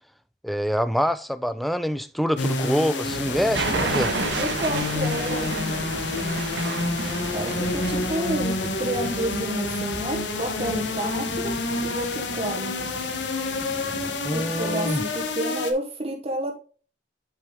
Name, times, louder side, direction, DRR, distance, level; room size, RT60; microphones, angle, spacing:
voice 1, 0.4-4.2 14.2-15.0, equal, ahead, 0.4 m, -25 dB
sound 1, 2.4-15.7, left 3 dB, 90° left, 1.1 m, -29 dB
sound 2, 3.1-15.3, right 1 dB, 15° right, 1.1 m, -39 dB
sound 3, 3.5-9.1, right 3 dB, 85° right, 1.4 m, -30 dB
voice 2, 4.4-6.4 7.3-11.5 11.8-12.7 14.3-16.6, right 1 dB, 35° right, 1.0 m, -30 dB
8.6 x 4.8 x 3.6 m
head